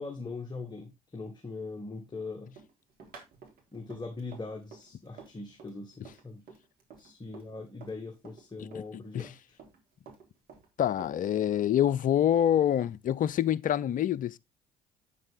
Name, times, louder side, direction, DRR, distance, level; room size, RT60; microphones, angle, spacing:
voice 1, 0.0-2.5 3.7-6.4 7.0-9.6, left 3 dB, 25° left, 2.3 m, -41 dB
Run, 2.6-8.0 8.2-9.8 10.1-11.6 11.9-13.3, right 5 dB, 60° right, 3.6 m, -51 dB
voice 2, 10.8-14.4, left 10 dB, 50° left, 0.7 m, -26 dB
9.1 x 7.5 x 3.7 m
hypercardioid pair, 55°, 18 cm